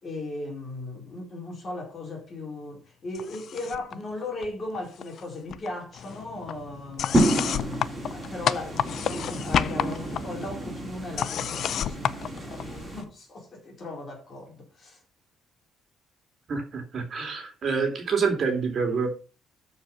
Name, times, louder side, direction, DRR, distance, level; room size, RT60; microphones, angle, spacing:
voice 1, 0.0-12.6 12.9-15.0, left 2 dB, 30° left, 4.5 m, -37 dB
sound 1, 3.1-3.9 4.2-5.2 5.5-13.0, left 9 dB, 45° left, 0.5 m, -31 dB
sound 2, 7.1-13.0, right 1 dB, 15° right, 3.6 m, -30 dB
voice 2, 16.5-19.1, right 5 dB, 35° right, 2.8 m, -27 dB
13.5 x 5.1 x 5.7 m
cardioid pair, 175°, 0 cm